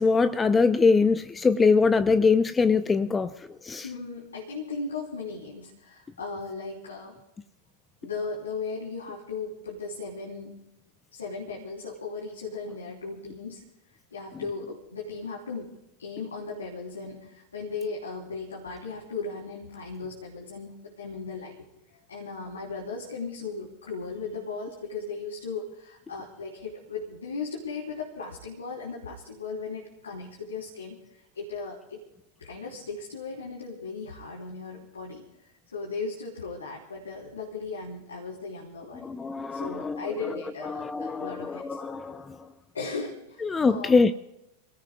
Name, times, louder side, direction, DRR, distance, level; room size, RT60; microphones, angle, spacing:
voice 1, 0.0-3.3 3.6-3.9 39.0-40.0 40.7-42.4 43.4-44.1, left 4 dB, 15° left, 0.6 m, -23 dB
voice 2, 3.8-7.2 8.0-10.6 11.1-13.7 14.1-15.7 16.0-21.6 21.9-32.0 32.4-39.1 39.5-41.8 42.7-44.0, left 4 dB, 70° left, 3.4 m, -37 dB
30.0 x 18.0 x 2.3 m
figure-of-eight pair, 90°, 0 cm